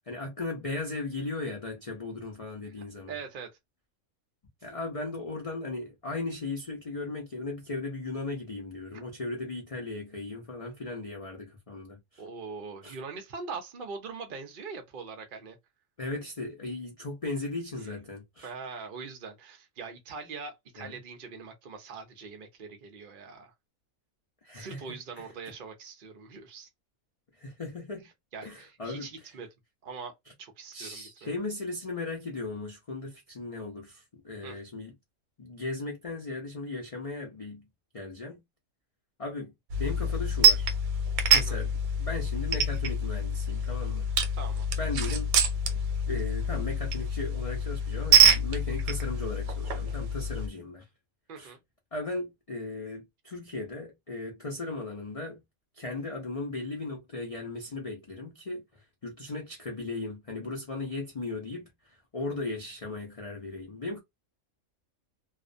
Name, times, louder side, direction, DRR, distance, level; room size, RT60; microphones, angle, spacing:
voice 1, 0.1-3.2 4.6-12.2 12.8-13.0 16.0-18.5 20.8-21.0 24.4-25.3 27.3-28.1 28.4-29.3 30.7-34.9 35.4-37.7 37.9-38.4 39.2-40.7 41.3-41.7 42.0-44.1 44.8-45.3 46.1-50.9 51.4-51.5 51.9-55.4 55.7-64.0, left 3 dB, 65° left, 0.3 m, -37 dB
voice 2, 3.1-3.5 12.2-15.6 18.4-23.5 24.5-26.7 28.3-29.5 29.8-30.1 30.4-31.4 34.4-34.6 41.3-41.6 44.3-44.7 51.3-51.6, right 5 dB, 55° right, 0.6 m, -42 dB
sound 1, 39.7-50.5, right 3 dB, 90° right, 1.0 m, -26 dB
2.4 x 2.1 x 2.5 m
omnidirectional pair, 1.5 m